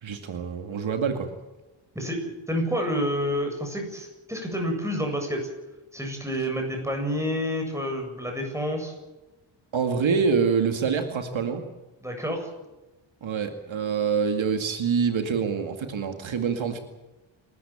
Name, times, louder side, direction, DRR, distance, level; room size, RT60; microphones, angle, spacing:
voice 1, 0.0-1.3 9.7-11.6 13.2-16.8, right 6 dB, 65° right, 6 dB, 2.3 m, -26 dB
voice 2, 1.9-5.5 5.9-8.9 12.0-12.5, equal, 5° right, 3 dB, 7.8 m, -29 dB
28.5 x 14.0 x 8.8 m, 1.1 s
cardioid pair, 95°, 50 cm